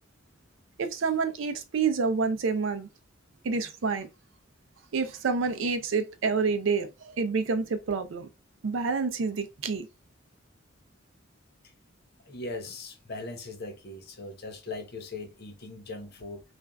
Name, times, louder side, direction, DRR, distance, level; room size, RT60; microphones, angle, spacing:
voice 1, 0.8-2.9 3.4-4.1 4.9-8.3 8.6-9.9, right 4 dB, 70° right, 0.5 m, -28 dB
voice 2, 12.2-16.4, left 2 dB, 55° left, 0.7 m, -39 dB
3.2 x 2.4 x 2.3 m
head